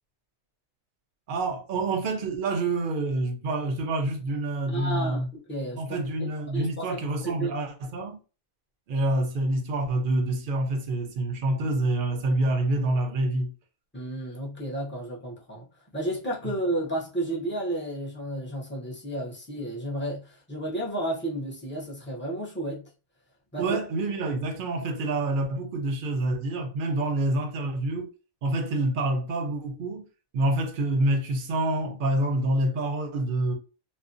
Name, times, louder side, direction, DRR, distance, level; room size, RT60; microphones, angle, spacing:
voice 1, 1.3-5.3 5.8-8.2 8.9-13.5 23.6-28.1 28.4-30.1 30.3-33.6, right 2 dB, 55° right, 0.6 m, -27 dB
voice 2, 4.7-5.8 6.2-7.5 13.9-15.6 15.9-22.8 23.5-23.8, right 1 dB, 15° left, 0.4 m, -32 dB
2.5 x 2.1 x 2.5 m
omnidirectional pair, 1.2 m